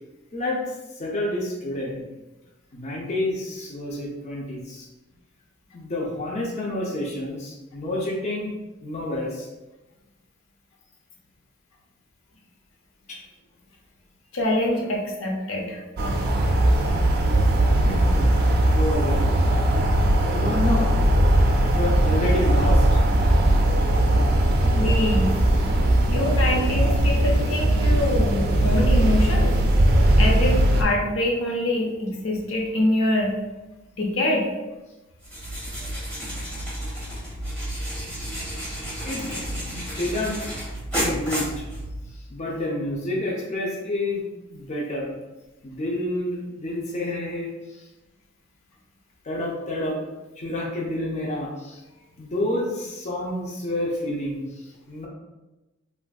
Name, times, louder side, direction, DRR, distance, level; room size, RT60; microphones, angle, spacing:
voice 1, 0.3-0.7 1.0-2.1 2.7-4.9 5.7-8.5 8.8-9.5 13.1-13.2 17.8-18.5 18.7-19.4 20.2-20.9 21.7-23.0 39.0-39.2 39.7-40.4 41.0-41.6 42.3-44.2 44.5-45.1 45.6-47.9 49.2-50.0 50.4-51.8 52.2-55.1, left 1 dB, 35° left, -2 dB, 0.5 m, -29 dB
voice 2, 14.3-15.8 24.8-25.3 26.1-29.6 30.2-33.3 34.0-34.5 41.0-41.2, left 1 dB, 90° left, 0 dB, 0.6 m, -25 dB
sound 1, 16.0-30.8, right 1 dB, 50° right, 0.4 m, -19 dB
sound 2, 35.2-42.2, equal, 5° left, 1.2 m, -31 dB
3.2 x 2.5 x 2.2 m, 1.1 s
head